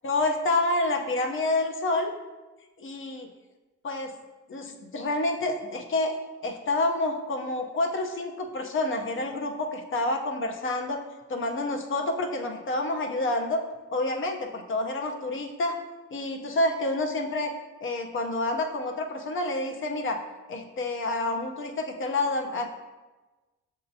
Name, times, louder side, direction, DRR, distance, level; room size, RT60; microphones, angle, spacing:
voice 1, 0.0-2.1 2.8-3.3 3.8-4.1 4.5-11.0 11.3-13.6 13.9-15.8 16.1-17.5 17.8-20.2 20.5-22.7, left 2 dB, 40° left, 3 dB, 0.6 m, -28 dB
6.7 x 2.8 x 2.6 m, 1.2 s
cardioid pair, 90°, 30 cm